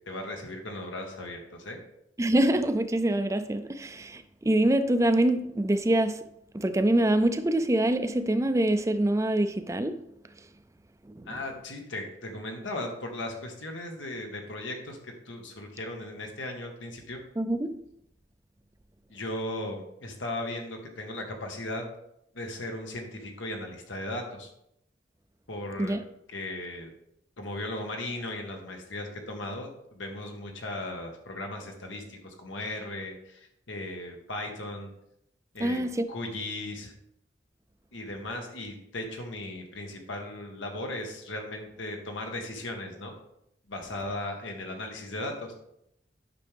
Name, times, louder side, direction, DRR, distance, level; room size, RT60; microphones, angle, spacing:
voice 1, 0.1-1.8 11.3-17.2 19.1-21.9 22.3-24.5 25.5-26.0 26.3-26.9 27.4-34.9 35.5-35.8 36.1-36.9 37.9-43.1 43.7-45.5, left 1 dB, 90° left, 1.5 m, -37 dB
voice 2, 2.2-6.3 6.5-10.0 11.2-11.3 17.4-17.8 25.8-26.0 35.6-36.1, right 1 dB, 15° right, 0.4 m, -25 dB
9.5 x 6.1 x 3.5 m
head